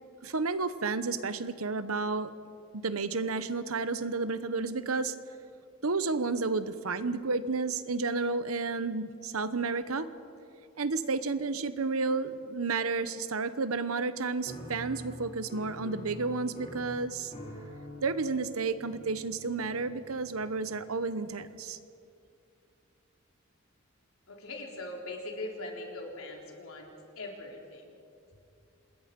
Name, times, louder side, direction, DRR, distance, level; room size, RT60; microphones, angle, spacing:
voice 1, 0.2-2.3 2.7-5.1 5.8-10.1 10.8-17.3 18.0-21.8, right 4 dB, 80° right, 13 dB, 1.0 m, -31 dB
Piano, 14.5-21.2, equal, 35° left, 3.6 m, -46 dB
voice 2, 24.3-27.9, left 2 dB, 80° left, 0 dB, 3.7 m, -41 dB
27.0 x 20.5 x 5.3 m, 2.5 s
head